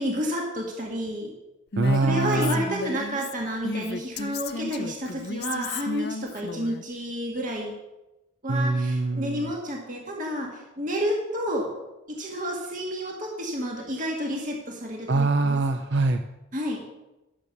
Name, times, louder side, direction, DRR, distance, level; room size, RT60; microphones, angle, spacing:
voice 1, 0.0-1.3 1.9-7.7 8.4-11.7 12.1-15.6 16.5-16.8, equal, 40° right, -1 dB, 1.8 m, -30 dB
Female speech woman speaking, 1.7-6.8, left 3 dB, 55° left, 0.7 m, -34 dB
voice 2, 1.8-2.6 8.5-9.5 15.1-16.2, right 2 dB, 65° right, 7 dB, 0.6 m, -24 dB
12.5 x 6.8 x 6.6 m, 1.0 s
head